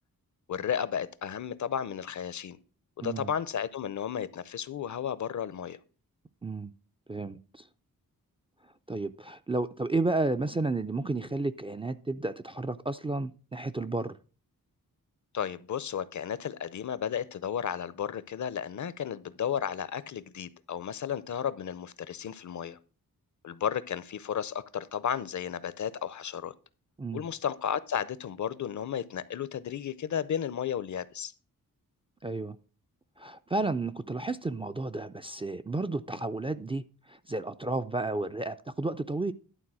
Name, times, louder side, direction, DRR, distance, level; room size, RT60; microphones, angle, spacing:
voice 1, 0.5-2.6 3.0-5.8 15.3-22.8 23.4-26.5 27.1-31.3, left 8 dB, 55° left, 0.6 m, -33 dB
voice 2, 3.0-3.3 6.4-6.7 7.1-7.7 8.9-14.2 27.0-27.2 32.2-32.6 33.2-39.3, right 2 dB, 15° right, 0.3 m, -32 dB
11.5 x 3.8 x 6.1 m
wide cardioid pair, 105°, 35 cm